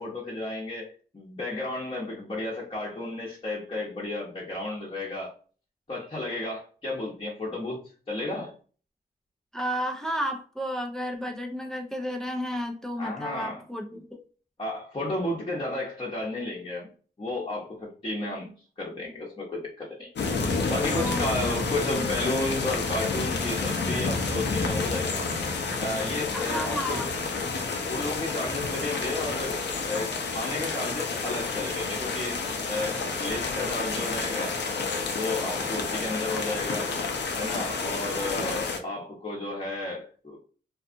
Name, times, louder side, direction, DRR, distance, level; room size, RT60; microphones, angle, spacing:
voice 1, 0.0-5.3 5.9-8.5 13.0-13.6 13.9-14.0 14.6-16.9 17.2-18.5 18.8-20.1 20.6-25.2 25.8-27.0 27.8-29.6 29.9-32.4 32.7-34.6 35.0-36.9 37.3-40.4, left 2 dB, 30° left, 0.9 m, -32 dB
voice 2, 9.5-14.2 21.0-21.6 26.3-27.1, equal, 5° left, 0.5 m, -32 dB
sound 1, 20.1-38.8, left 4 dB, 75° left, 0.6 m, -30 dB
2.6 x 2.3 x 2.5 m
cardioid pair, 50°, 18 cm